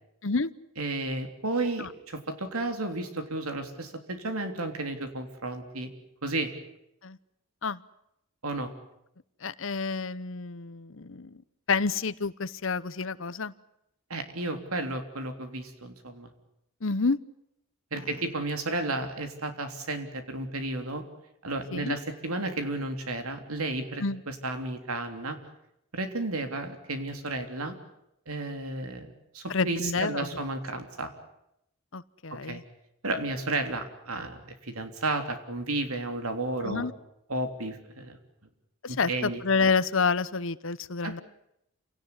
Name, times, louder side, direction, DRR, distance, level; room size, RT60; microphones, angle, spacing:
voice 1, 0.8-5.9 6.2-6.5 8.4-8.7 14.1-16.3 17.9-21.0 21.4-25.4 25.9-27.8 28.3-31.1 32.3-32.6 33.0-36.9 37.3-38.2 38.9-39.4 41.0-41.2, right 2 dB, 85° right, 7 dB, 3.4 m, -33 dB
voice 2, 9.4-11.4 11.7-13.5 16.8-17.2 18.0-18.1 21.7-21.9 24.0-24.2 29.5-30.3 31.9-32.6 36.6-36.9 38.8-41.2, left 4 dB, 65° left, 16 dB, 0.9 m, -29 dB
28.5 x 18.0 x 9.7 m, 0.81 s
head